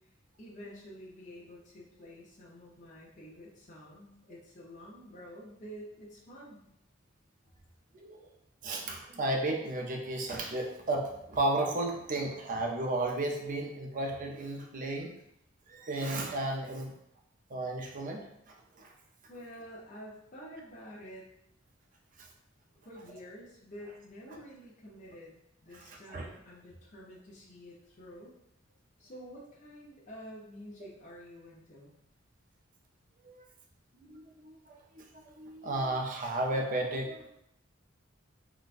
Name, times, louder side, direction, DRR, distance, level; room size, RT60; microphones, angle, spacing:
voice 1, 0.4-6.6 19.3-21.3 22.8-25.4 25.6-28.3 29.0-32.0, equal, 40° left, -6 dB, 0.6 m, -49 dB
voice 2, 8.6-15.1 15.7-16.9 17.5-18.2 18.8-18.9 25.7-26.3 33.2-33.4 34.1-34.5 35.0-35.1 35.4-37.3, right 2 dB, 40° right, 1 dB, 0.5 m, -33 dB
3.9 x 2.1 x 2.4 m, 0.77 s
head